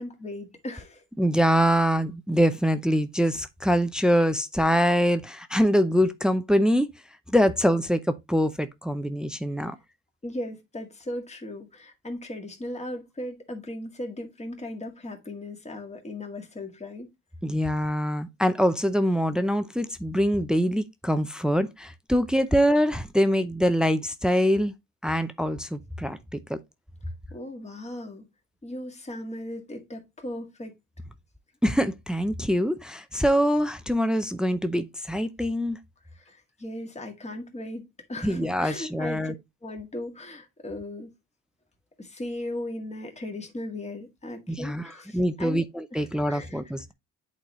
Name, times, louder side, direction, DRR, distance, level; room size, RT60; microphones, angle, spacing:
voice 1, 0.0-1.0 10.2-17.1 27.3-28.3 28.6-30.7 36.2-39.3 39.6-41.1 42.0-45.7 45.9-46.6, left 1 dB, 20° left, 2.0 m, -37 dB
voice 2, 1.2-6.9 7.3-9.8 17.4-24.7 25.0-26.6 31.6-35.8 38.2-39.3 44.5-46.9, equal, 5° right, 0.6 m, -24 dB
8.8 x 4.1 x 3.0 m
cardioid pair, 90°, 30 cm